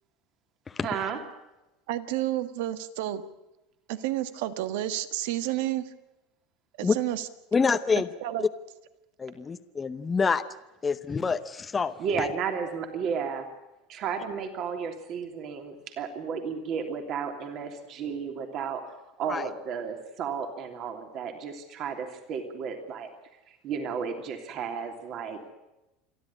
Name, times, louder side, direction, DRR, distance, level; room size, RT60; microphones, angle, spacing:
voice 1, 0.8-1.2 12.0-13.5 13.9-18.8 19.2-23.1 23.5-25.4, right 6 dB, 40° right, 5 dB, 3.1 m, -33 dB
voice 2, 1.9-3.2 3.9-5.9 6.8-7.2 8.2-8.5, right 13 dB, 75° right, 12 dB, 1.6 m, -30 dB
voice 3, 7.5-8.1 9.2-10.4 10.8-12.3 19.3-19.5, left 5 dB, 15° left, 9 dB, 0.8 m, -27 dB
28.0 x 11.5 x 9.9 m, 0.97 s
supercardioid pair, 150°, 0 cm